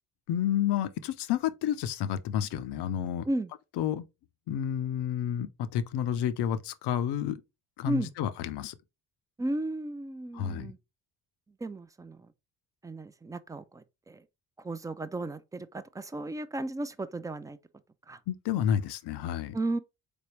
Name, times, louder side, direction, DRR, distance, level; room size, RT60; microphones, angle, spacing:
voice 1, 0.3-3.3 3.8-4.1 4.5-7.4 7.8-8.7 10.3-10.7 18.3-19.6, left 10 dB, 60° left, 0.6 m, -30 dB
voice 2, 9.4-10.8 11.6-12.2 12.8-14.2 14.6-17.6 18.1-18.2 19.5-19.8, right 2 dB, 10° right, 0.4 m, -34 dB
4.1 x 3.4 x 3.1 m
hypercardioid pair, 45°, 46 cm